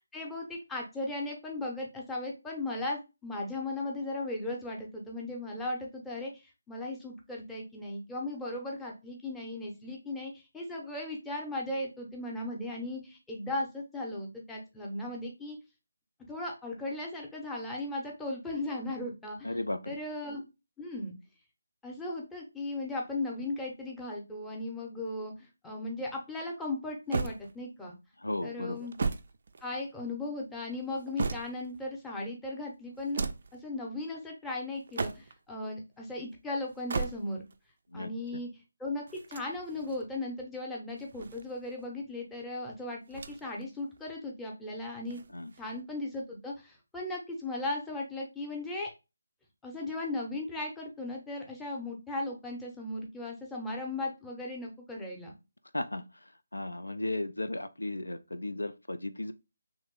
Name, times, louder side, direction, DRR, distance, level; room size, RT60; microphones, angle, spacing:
voice 1, 0.1-15.6 16.3-19.6 19.9-20.4 20.8-21.1 21.8-27.9 28.4-28.9 29.6-33.2 33.6-37.4 37.9-38.5 38.8-45.2 45.6-48.9 49.6-55.3, left 2 dB, 5° left, 0.7 m, -37 dB
voice 2, 19.4-20.0 28.2-28.9 37.9-38.1 45.3-45.5 55.7-56.0 56.5-59.3, left 1 dB, 85° left, 0.3 m, -35 dB
sound 1, 27.1-27.9 28.7-30.1 30.7-31.8 32.9-33.6 34.7-35.5 36.7-37.6 39.1-40.0 40.9-41.9 43.1-43.6 44.0-44.1 45.0-45.8, right 4 dB, 50° right, 0.3 m, -37 dB
3.0 x 2.6 x 3.7 m
figure-of-eight pair, 155°, 0 cm